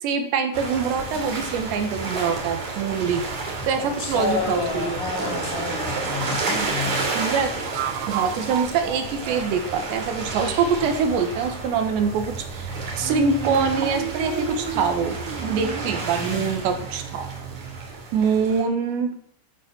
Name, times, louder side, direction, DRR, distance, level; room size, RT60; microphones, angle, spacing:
voice 1, 0.0-3.2 3.7-5.0 6.5-6.8 7.2-7.5 8.1-12.7 13.0-15.2 15.4-17.3 18.1-19.1, right 5 dB, 70° right, 6 dB, 3.6 m, -24 dB
sound 1, 0.5-18.6, right 3 dB, 40° right, 4.3 m, -31 dB
voice 2, 3.7-7.1 16.2-16.6, left 4 dB, 80° left, 1 dB, 6.2 m, -30 dB
sound 2, 5.3-5.5 7.7-11.0 13.0-17.9, right 12 dB, 85° right, 3.5 m, -34 dB
13.5 x 13.5 x 6.3 m, 0.66 s
omnidirectional pair, 5.7 m